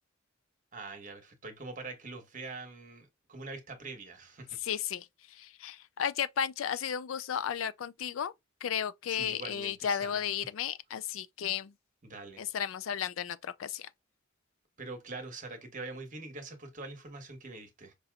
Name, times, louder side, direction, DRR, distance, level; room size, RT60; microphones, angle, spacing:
voice 1, 0.7-4.6 9.1-10.3 12.0-12.5 14.8-17.9, right 3 dB, 40° right, 1.2 m, -44 dB
voice 2, 4.6-8.3 8.6-11.7 12.4-13.9, left 8 dB, 75° left, 0.4 m, -34 dB
5.3 x 2.8 x 2.3 m
head